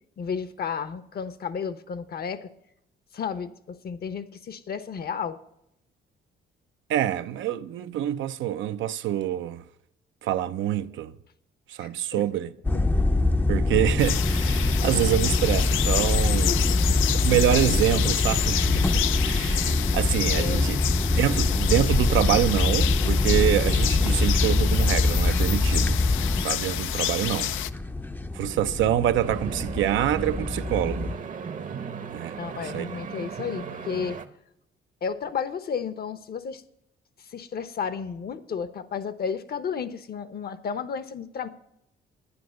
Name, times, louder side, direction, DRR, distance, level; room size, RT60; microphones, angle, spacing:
voice 1, 0.2-2.5 3.1-5.4 11.8-12.4 16.5-16.8 20.3-20.8 32.4-34.2 35.0-36.6 37.3-41.5, left 6 dB, 50° left, 0.9 m, -32 dB
voice 2, 6.9-9.6 10.2-11.1 11.7-12.5 13.5-16.6 17.2-20.8 21.2-26.0 26.4-27.5 28.4-31.1 32.1-32.4 32.7-32.9, right 12 dB, 75° right, 0.6 m, -26 dB
sound 1, 12.6-31.1, left 2 dB, 10° left, 0.5 m, -24 dB
sound 2, 14.0-27.7, left 12 dB, 80° left, 0.5 m, -29 dB
sound 3, 29.2-34.2, right 6 dB, 40° right, 0.8 m, -36 dB
9.8 x 9.4 x 6.4 m
cardioid pair, 90°, 20 cm